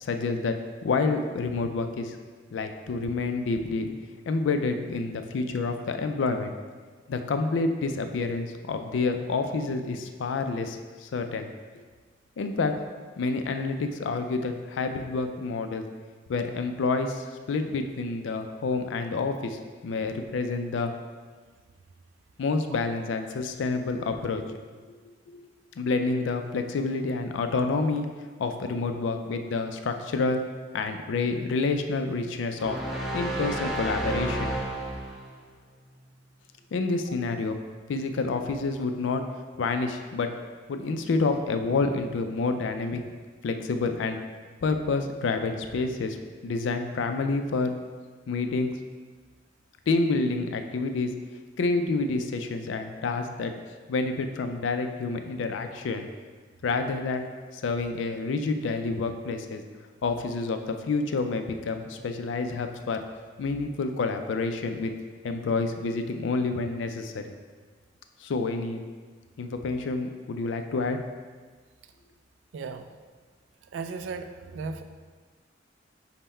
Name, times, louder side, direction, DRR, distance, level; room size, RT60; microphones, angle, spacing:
voice 1, 0.0-0.5 0.8-2.2 2.5-3.9 4.3-6.5 7.1-11.5 12.4-12.7 13.2-15.8 16.3-20.9 22.4-24.6 25.8-28.1 28.4-30.4 30.7-32.8 33.1-34.5 36.7-37.6 37.9-39.2 39.6-40.3 40.7-43.0 43.4-44.2 44.6-46.2 46.4-47.7 48.3-48.7 49.9-51.1 51.6-53.5 53.9-56.1 56.6-59.6 60.0-63.0 63.4-64.9 65.2-67.3 68.2-68.8 69.4-71.0, left 3 dB, 75° left, 7 dB, 0.4 m, -28 dB
sound 1, 32.6-35.4, right 1 dB, ahead, 0.5 m, -31 dB
voice 2, 72.5-72.9 73.7-74.8, right 4 dB, 80° right, 8 dB, 0.3 m, -36 dB
5.5 x 2.1 x 4.2 m, 1.5 s
head